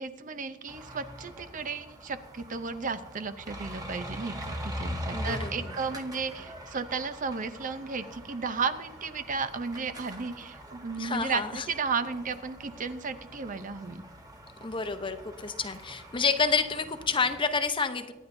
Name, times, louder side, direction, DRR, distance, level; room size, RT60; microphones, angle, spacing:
voice 1, 0.0-14.0, right 4 dB, 45° right, 11 dB, 0.6 m, -34 dB
sound 1, 0.7-17.6, equal, 20° right, 1.2 m, -42 dB
voice 2, 5.1-5.8 11.0-11.6 14.6-18.1, left 4 dB, 25° left, 9 dB, 0.8 m, -29 dB
25.5 x 9.7 x 2.7 m, 1.2 s
head